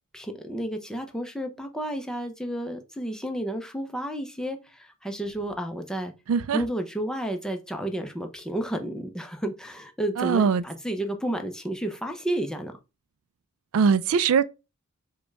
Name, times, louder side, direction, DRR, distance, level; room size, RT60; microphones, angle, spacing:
voice 1, 0.1-6.1 6.5-12.7, right 1 dB, 5° left, 0.6 m, -31 dB
voice 2, 6.3-6.6 10.2-10.6 13.7-14.4, right 6 dB, 70° right, 0.3 m, -21 dB
5.1 x 2.2 x 4.6 m
head